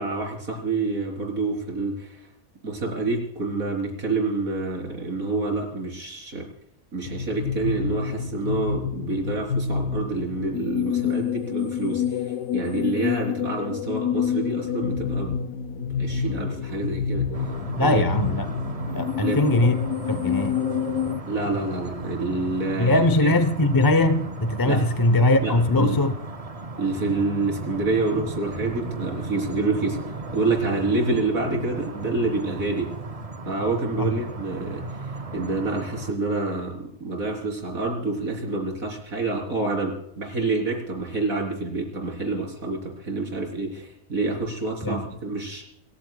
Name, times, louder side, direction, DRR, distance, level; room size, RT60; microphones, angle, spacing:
voice 1, 0.0-2.3 2.6-6.5 6.9-15.4 15.8-17.3 17.8-18.1 19.1-19.4 21.3-23.3 24.7-24.8 25.4-26.0 26.8-30.0 30.3-32.9 33.5-45.6, right 3 dB, 80° right, 4.4 m, -27 dB
sound 1, 7.1-21.2, left 7 dB, 75° left, 1.1 m, -28 dB
sound 2, 17.3-36.1, right 2 dB, 30° right, 0.8 m, -36 dB
voice 2, 17.8-18.5 18.9-20.6 22.8-26.1 34.0-34.1 44.8-45.0, left 2 dB, 20° left, 0.6 m, -21 dB
29.0 x 14.5 x 2.3 m
omnidirectional pair, 1.5 m